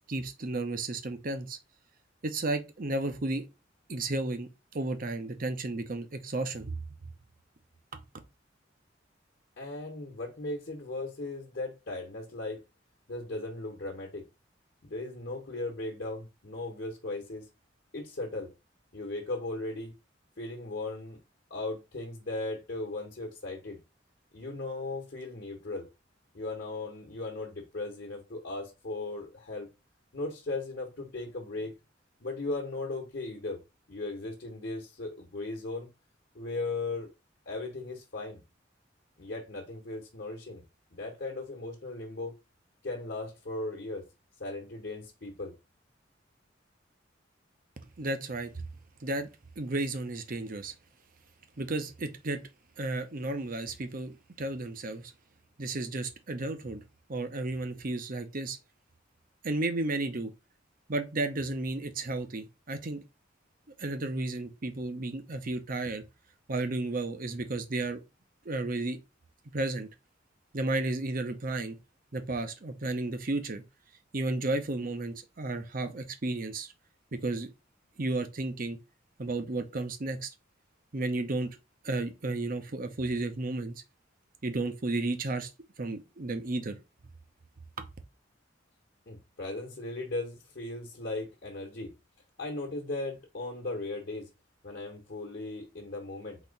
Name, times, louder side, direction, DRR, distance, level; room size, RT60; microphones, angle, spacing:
voice 1, 0.1-1.6 2.2-3.4 3.9-4.5 4.7-6.7 7.9-8.0 48.0-48.7 49.0-49.3 49.6-50.7 51.6-52.4 52.8-55.1 55.6-56.8 57.1-58.6 59.4-60.3 60.9-63.0 63.8-66.0 66.5-68.0 68.4-69.0 69.5-69.9 70.5-71.8 72.1-73.6 74.1-76.7 77.1-77.5 78.0-78.8 79.2-80.3 80.9-81.6 81.8-83.7 84.4-85.5 85.8-86.8 87.8-87.9, right 2 dB, 50° right, 0.8 m, -33 dB
voice 2, 9.6-12.6 13.1-14.2 14.8-17.5 17.9-18.5 18.9-19.9 20.4-21.2 21.5-23.8 24.3-25.9 26.3-29.7 30.1-31.7 32.2-33.6 33.9-35.9 36.3-37.1 37.5-38.4 39.2-40.6 40.9-42.4 42.8-44.1 44.4-45.5 89.1-91.9 92.4-94.3 94.6-96.4, left 2 dB, 55° left, 1.2 m, -37 dB
4.1 x 3.0 x 4.0 m
head